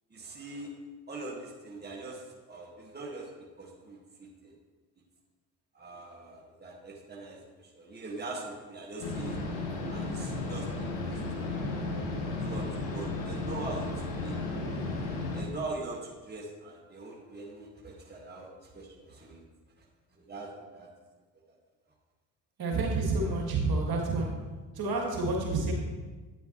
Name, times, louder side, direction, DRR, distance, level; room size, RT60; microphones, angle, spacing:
voice 1, 0.1-0.7 1.1-3.3 3.6-4.5 5.7-9.4 9.9-11.8 12.4-14.4 15.3-19.4 19.8-19.9 20.1-20.9 21.5-21.6, right 2 dB, 20° right, -1 dB, 1.6 m, -42 dB
sound 1, 9.0-15.4, left 2 dB, 75° left, 1.5 m, -34 dB
voice 2, 22.6-24.3 24.7-25.7, right 3 dB, 50° right, 0 dB, 1.8 m, -29 dB
8.8 x 7.0 x 2.9 m, 1.3 s
hypercardioid pair, 55°, 47 cm